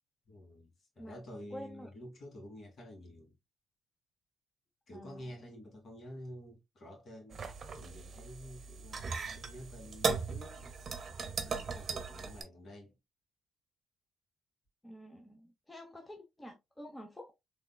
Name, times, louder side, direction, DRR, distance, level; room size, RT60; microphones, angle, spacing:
voice 1, 0.3-3.3 4.9-7.4 7.8-10.7 11.4-12.9, equal, 50° left, 2.1 m, -50 dB
voice 2, 1.5-1.9 4.9-5.4 14.8-17.3, equal, 15° left, 0.8 m, -49 dB
sound 1, 7.3-12.4, right 5 dB, 45° right, 0.8 m, -38 dB
3.7 x 3.2 x 2.2 m
cardioid pair, 90°, 0 cm